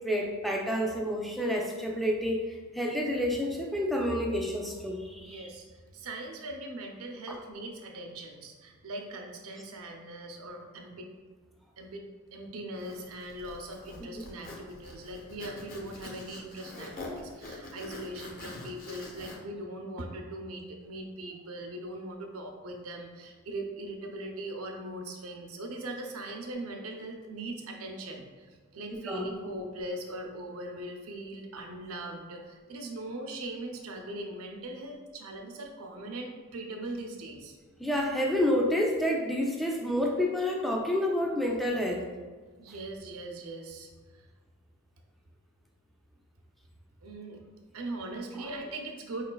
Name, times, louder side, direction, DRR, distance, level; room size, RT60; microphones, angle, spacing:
voice 1, 0.0-5.5 7.3-7.4 14.0-14.1 29.1-29.3 37.8-42.1 48.4-48.5, equal, ahead, 0 dB, 0.3 m, -29 dB
voice 2, 5.2-11.1 11.8-12.0 12.3-37.6 42.6-44.2 47.0-47.4 47.7-49.3, right 1 dB, 65° right, 3 dB, 0.6 m, -40 dB
Zipper (clothing), 12.8-19.4, left 2 dB, 40° left, 0.6 m, -45 dB
4.7 x 3.1 x 2.2 m, 1.5 s
head